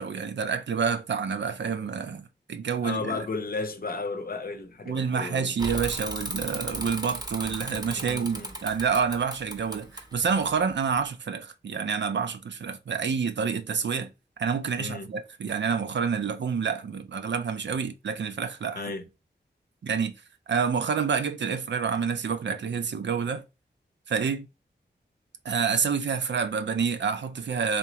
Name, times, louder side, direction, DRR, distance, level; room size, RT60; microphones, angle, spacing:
voice 1, 0.0-3.2 4.9-14.1 14.4-18.8 19.8-20.1 20.5-23.4 24.1-24.5 25.4-27.8, right 6 dB, 70° right, 0.5 m, -28 dB
voice 2, 2.8-5.5 8.0-8.5 14.8-15.1 18.7-19.0, left 4 dB, 55° left, 0.7 m, -34 dB
Bicycle / Mechanisms, 5.6-11.0, right 1 dB, 20° right, 0.7 m, -37 dB
3.6 x 2.9 x 2.9 m
wide cardioid pair, 85°, 19 cm